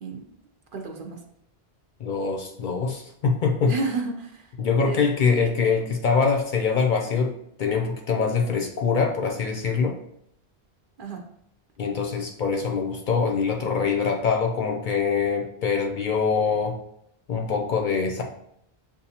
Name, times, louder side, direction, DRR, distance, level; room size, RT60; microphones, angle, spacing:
voice 1, 0.0-0.3 0.7-1.2 3.7-4.5 4.9-5.0 11.0-11.2, right 3 dB, 60° right, 3 dB, 0.7 m, -31 dB
voice 2, 2.0-3.7 4.6-7.3 7.6-10.0 11.8-16.8 17.3-18.2, left 5 dB, 60° left, 3 dB, 0.6 m, -24 dB
6.8 x 2.5 x 2.7 m, 0.74 s
omnidirectional pair, 1.1 m